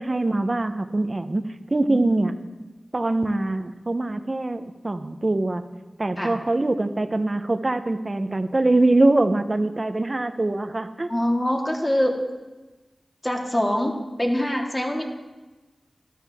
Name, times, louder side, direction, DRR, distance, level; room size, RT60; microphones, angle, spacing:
voice 1, 0.0-2.3 2.9-5.6 6.0-11.1, right 2 dB, 40° right, 9 dB, 0.8 m, -23 dB
voice 2, 11.1-12.2 13.2-15.0, equal, 20° left, 0 dB, 2.2 m, -24 dB
13.0 x 12.5 x 3.6 m, 1.2 s
cardioid pair, 45°, 0 cm